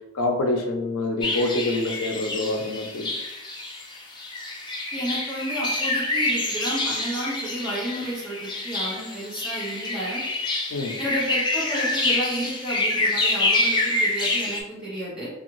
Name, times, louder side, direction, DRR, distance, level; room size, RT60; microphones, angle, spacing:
voice 1, 0.1-3.1 10.7-11.0, left 2 dB, 80° left, 3 dB, 0.5 m, -26 dB
sound 1, 1.2-14.6, left 2 dB, 20° left, 0.3 m, -27 dB
voice 2, 4.9-10.2 11.0-15.3, right 1 dB, 5° right, -10 dB, 1.2 m, -31 dB
2.6 x 2.4 x 3.0 m, 0.95 s
head